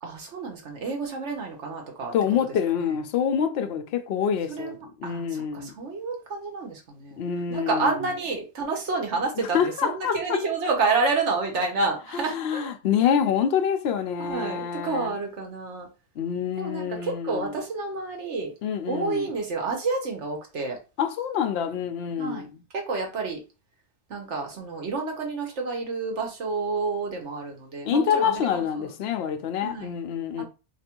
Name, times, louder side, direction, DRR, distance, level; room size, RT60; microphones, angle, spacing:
voice 1, 0.0-2.1 4.5-7.2 7.5-12.7 14.2-15.9 16.6-18.5 18.9-20.8 22.2-22.5 22.7-23.4 24.1-28.9 29.6-29.9 30.4-30.5, right 3 dB, 75° right, 1.4 m, -29 dB
voice 2, 2.1-5.7 7.2-8.1 9.4-10.4 12.1-15.2 16.2-17.6 18.6-19.3 21.0-22.6 27.8-30.4, left 8 dB, 65° left, 0.8 m, -26 dB
2.9 x 2.6 x 4.3 m
omnidirectional pair, 1.2 m